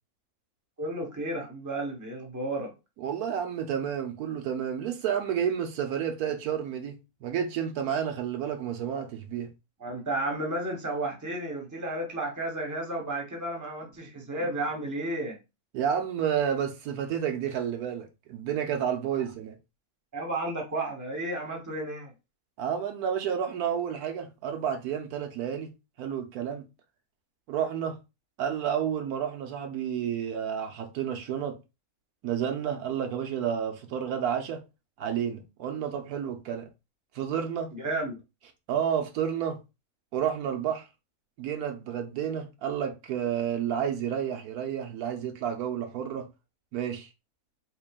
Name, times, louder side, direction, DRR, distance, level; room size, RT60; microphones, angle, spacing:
voice 1, 0.8-2.7 9.8-15.4 20.1-22.1 37.7-38.2, right 1 dB, 15° right, 0.9 m, -32 dB
voice 2, 3.0-9.5 15.7-19.6 22.6-25.7 26.0-26.6 27.5-28.0 28.4-31.6 32.2-34.6 35.0-36.7 37.1-37.7 38.7-39.6 40.1-40.9 41.4-46.3 46.7-47.1, right 8 dB, 85° right, 1.2 m, -30 dB
3.8 x 3.7 x 2.3 m
omnidirectional pair, 1.6 m